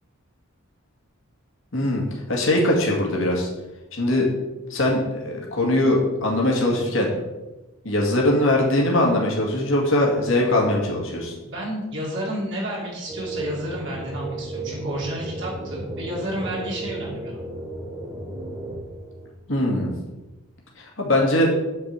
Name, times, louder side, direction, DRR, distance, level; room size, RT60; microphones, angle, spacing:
voice 1, 1.7-2.0 2.3-3.5 3.9-4.3 4.7-7.1 7.8-11.3 19.5-19.9 20.8-21.5, left 1 dB, 60° left, -1 dB, 2.0 m, -21 dB
voice 2, 11.4-17.4, equal, 55° right, -4 dB, 2.8 m, -31 dB
sound 1, 13.1-19.3, right 2 dB, 15° right, 1.2 m, -34 dB
8.6 x 5.0 x 7.5 m, 1.1 s
head